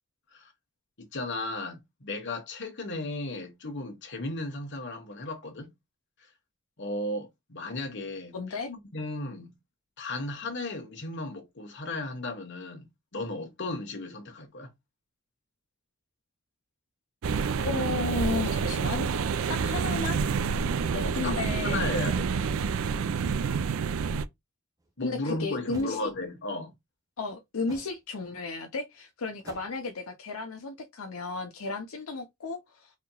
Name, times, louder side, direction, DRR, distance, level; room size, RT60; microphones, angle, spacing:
voice 1, 1.0-5.7 6.8-8.4 8.7-9.5 10.0-14.7 20.9-22.3 25.0-26.7, left 2 dB, 55° left, 1.3 m, -35 dB
voice 2, 8.3-8.7 17.6-19.2 19.5-20.2 21.1-21.8 25.0-26.1 27.2-32.9, left 3 dB, 80° left, 0.7 m, -33 dB
sound 1, 17.2-24.3, right 5 dB, 65° right, 0.4 m, -28 dB
sound 2, 24.8-24.9 25.7-26.0 27.7-28.0 29.4-29.8, right 1 dB, 15° right, 0.9 m, -48 dB
4.3 x 2.9 x 2.2 m
head